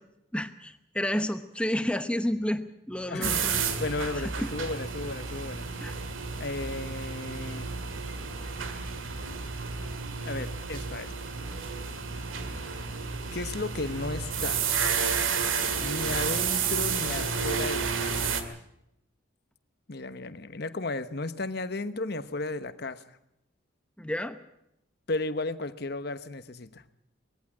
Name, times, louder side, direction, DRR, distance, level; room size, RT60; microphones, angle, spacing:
voice 1, 0.3-3.6 4.1-4.5 5.8-5.9 9.3-9.4 24.0-24.4, left 1 dB, 5° left, 9 dB, 0.9 m, -31 dB
voice 2, 3.1-3.4 3.8-5.7 6.4-7.7 10.2-11.3 13.3-14.7 15.8-18.3 19.9-23.0 25.1-26.8, left 2 dB, 55° left, 12 dB, 1.0 m, -34 dB
sound 1, 3.2-18.4, right 5 dB, 90° right, 2.1 m, -31 dB
20.5 x 15.0 x 8.5 m, 0.81 s
head